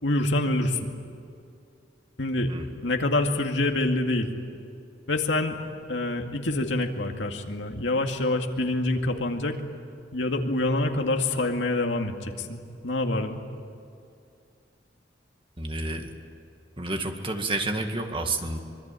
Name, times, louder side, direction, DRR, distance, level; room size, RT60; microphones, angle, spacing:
voice 1, 0.0-0.9 2.2-2.5 2.8-4.3 5.1-5.6 5.9-9.6 10.1-12.6 12.8-13.4, left 2 dB, 75° left, 4 dB, 2.2 m, -26 dB
voice 2, 15.6-16.1 16.8-18.6, right 2 dB, 30° right, 5 dB, 2.0 m, -29 dB
25.5 x 23.0 x 9.1 m, 2.5 s
head